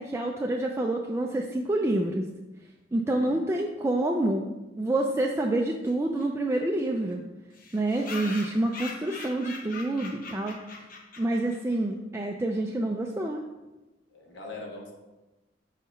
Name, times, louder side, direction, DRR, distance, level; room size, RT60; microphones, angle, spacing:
voice 1, 0.0-2.2 2.9-4.5 4.8-7.2 7.7-10.6 11.2-13.4, right 1 dB, 15° right, 1 dB, 0.4 m, -27 dB
voice 2, 3.0-3.5 14.1-14.9, left 2 dB, 90° left, 0 dB, 1.4 m, -42 dB
sound 1, 5.8-5.9 6.2-6.3 6.5-6.6 6.8-6.9 7.5-11.8, left 3 dB, 50° left, 0.9 m, -41 dB
5.7 x 4.1 x 5.5 m, 1.1 s
head